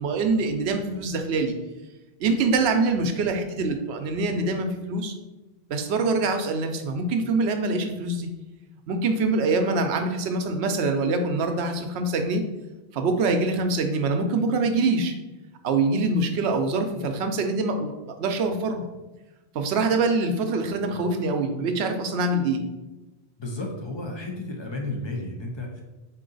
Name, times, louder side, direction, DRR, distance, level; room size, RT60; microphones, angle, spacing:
voice 1, 0.0-1.5 2.2-5.1 5.7-8.3 8.9-12.4 12.9-15.1 15.6-18.9 19.5-22.6, right 3 dB, 75° right, 6 dB, 0.8 m, -24 dB
voice 2, 23.4-25.8, left 2 dB, 35° left, 0 dB, 0.5 m, -32 dB
3.8 x 2.8 x 3.8 m, 1.1 s
omnidirectional pair, 1.1 m